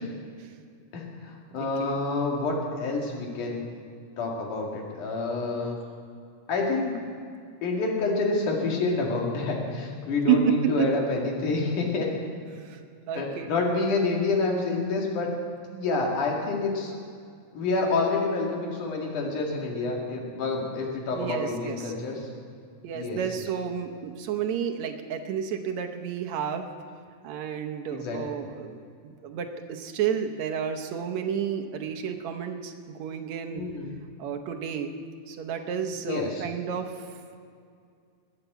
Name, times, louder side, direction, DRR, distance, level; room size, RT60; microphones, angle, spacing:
voice 1, 0.9-3.7 4.2-5.8 6.5-7.0 7.6-12.1 13.2-15.3 15.7-17.0 17.5-22.3 22.9-23.2 27.9-28.2 33.5-33.9 36.1-36.4, left 3 dB, 85° left, -1 dB, 3.7 m, -28 dB
voice 2, 1.6-2.0 10.3-10.9 12.5-12.8 13.1-13.5 21.1-21.9 22.8-26.7 27.2-33.6 34.2-34.9 35.3-37.2, right 8 dB, 70° right, 4 dB, 2.1 m, -30 dB
20.5 x 7.3 x 8.1 m, 2.3 s
omnidirectional pair, 3.5 m